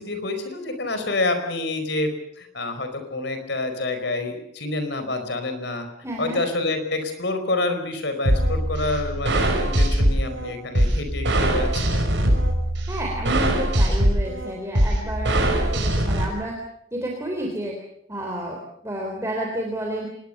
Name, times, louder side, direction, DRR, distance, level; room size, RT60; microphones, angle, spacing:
voice 1, 0.0-2.1 2.4-5.9 6.2-12.0, left 2 dB, 60° left, 7 dB, 4.8 m, -27 dB
voice 2, 6.0-6.4 12.9-16.6 16.9-17.8 18.1-20.1, right 1 dB, 15° right, 0 dB, 3.6 m, -30 dB
sound 1, 8.3-16.2, right 1 dB, 60° right, 6.0 m, -22 dB
25.5 x 20.5 x 6.8 m, 0.76 s
head